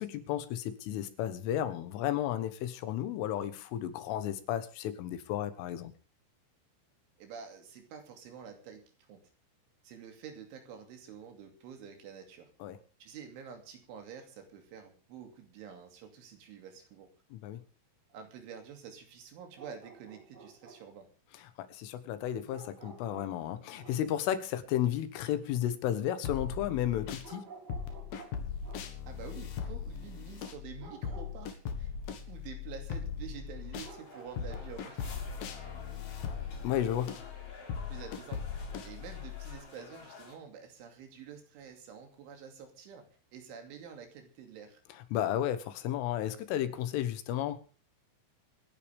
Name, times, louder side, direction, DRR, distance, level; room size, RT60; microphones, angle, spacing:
voice 1, 0.0-5.9 12.6-12.8 17.3-17.6 21.6-27.5 36.6-37.2 45.1-47.6, left 11 dB, 80° left, 11 dB, 3.8 m, -33 dB
voice 2, 7.2-8.8 9.1-9.2 9.8-12.5 13.0-17.1 18.1-21.1 29.1-31.9 32.3-35.0 37.9-38.4 38.8-43.1 43.3-44.8, right 7 dB, 70° right, 5 dB, 4.9 m, -48 dB
sound 1, 19.5-21.0 22.5-24.1 27.2-29.0 30.8-31.4 33.8-34.8, right 4 dB, 45° right, 1.3 m, -52 dB
sound 2, 26.2-27.3 27.7-33.9 34.4-39.6, left 7 dB, 60° left, 2.7 m, -39 dB
sound 3, 33.7-40.4, left 3 dB, 35° left, 3.6 m, -51 dB
26.0 x 10.5 x 3.5 m, 0.36 s
omnidirectional pair, 5.8 m